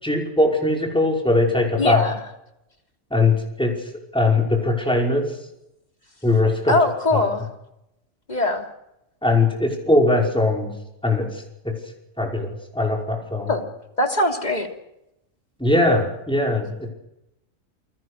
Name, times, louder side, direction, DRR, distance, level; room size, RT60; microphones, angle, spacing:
voice 1, 0.0-2.0 3.1-5.3 6.2-6.8 7.1-7.2 9.2-10.7 11.0-11.7 12.2-13.5 15.6-16.9, left 2 dB, 5° left, 0 dB, 5.5 m, -21 dB
voice 2, 1.8-2.2 6.7-7.5 8.3-8.7 13.4-13.6 14.0-14.7, left 2 dB, 30° left, 3 dB, 3.3 m, -21 dB
28.5 x 22.0 x 6.6 m, 0.87 s
omnidirectional pair, 1.4 m